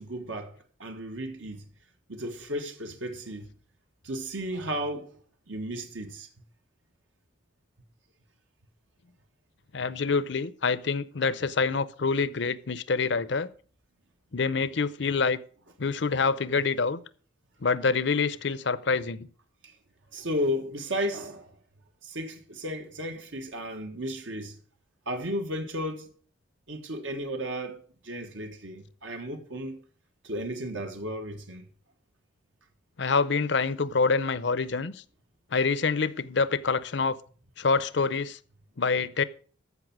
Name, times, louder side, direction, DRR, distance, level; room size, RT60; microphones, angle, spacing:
voice 1, 0.0-1.7 2.1-3.5 4.0-5.2 5.5-6.3 19.6-19.7 20.1-21.6 22.0-24.6 25.1-26.1 26.7-29.8 30.2-31.7, equal, 75° right, 1.5 m, -34 dB
voice 2, 9.7-13.5 14.3-15.4 15.8-17.0 17.6-19.3 33.0-35.0 35.5-37.2 37.6-38.4 38.8-39.2, left 4 dB, 65° left, 0.6 m, -26 dB
14.0 x 5.6 x 6.0 m
head